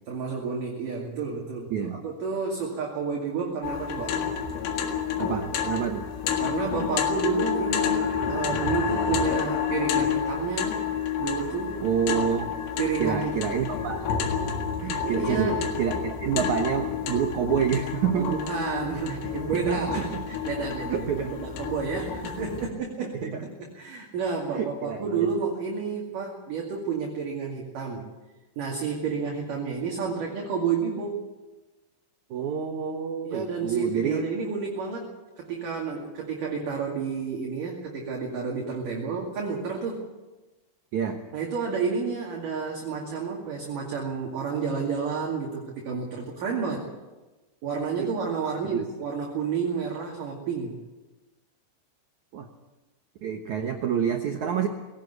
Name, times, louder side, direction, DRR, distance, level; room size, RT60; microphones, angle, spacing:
voice 1, 0.1-4.2 6.4-10.8 11.2-11.8 12.8-13.4 15.0-15.6 18.1-23.3 23.6-28.1 28.6-31.2 33.2-40.0 41.3-46.9 47.6-50.8, right 5 dB, 50° right, -1 dB, 3.5 m, -30 dB
voice 2, 1.7-2.0 5.2-6.1 11.8-12.5 13.0-14.1 14.8-18.4 19.5-20.2 20.9-21.3 23.0-23.5 24.5-25.3 32.3-34.3 40.9-41.2 48.0-48.1 48.7-48.8 52.3-52.5 53.2-54.7, right 7 dB, 90° right, 4 dB, 1.6 m, -28 dB
sound 1, 3.6-22.7, left 7 dB, 90° left, 4.3 m, -29 dB
20.5 x 17.5 x 8.2 m, 1.1 s
omnidirectional pair, 5.4 m